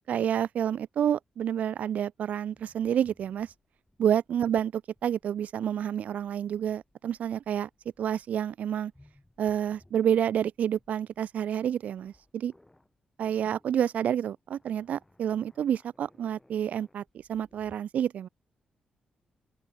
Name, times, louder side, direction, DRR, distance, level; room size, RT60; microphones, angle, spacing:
voice 1, 0.1-3.5 4.0-7.7 8.0-8.9 9.4-12.5 13.2-17.0 17.3-18.3, right 9 dB, 70° right, 0.4 m, -29 dB
sound 1, 2.2-17.8, left 1 dB, 10° left, 4.3 m, -64 dB
open air
cardioid pair, 100°, 3 cm